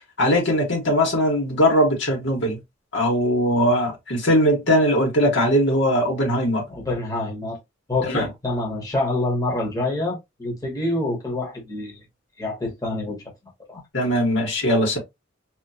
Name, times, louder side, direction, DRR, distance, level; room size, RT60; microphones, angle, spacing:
voice 1, 0.2-2.6 2.9-6.6 8.0-8.3 13.9-15.0, equal, 65° left, 1.7 m, -20 dB
voice 2, 6.7-7.6 7.9-12.0 12.4-13.2 13.7-13.8, left 2 dB, 20° left, 1.2 m, -26 dB
3.0 x 2.9 x 2.8 m
head